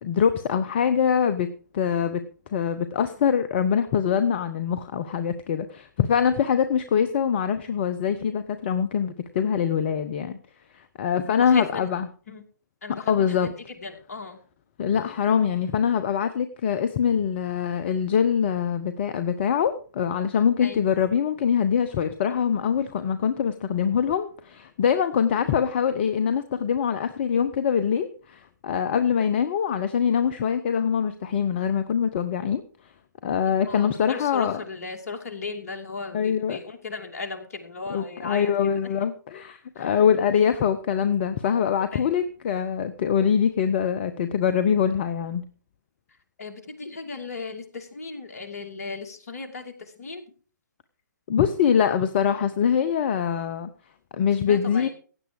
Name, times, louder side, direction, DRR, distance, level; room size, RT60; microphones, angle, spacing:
voice 1, 0.0-1.5 1.7-2.2 2.5-10.4 10.7-12.1 13.0-13.5 14.8-32.6 33.2-34.6 36.1-36.6 37.9-45.4 51.3-53.7 54.1-54.9, left 7 dB, 35° left, 11 dB, 0.9 m, -24 dB
voice 2, 11.2-11.9 12.3-12.4 12.8-13.5 13.8-14.4 20.6-20.8 33.7-38.5 39.8-39.9 41.9-42.1 46.4-50.2 54.5-54.9, left 4 dB, 50° left, 5 dB, 2.8 m, -36 dB
16.0 x 9.4 x 4.8 m, 0.40 s
figure-of-eight pair, 135°, 10 cm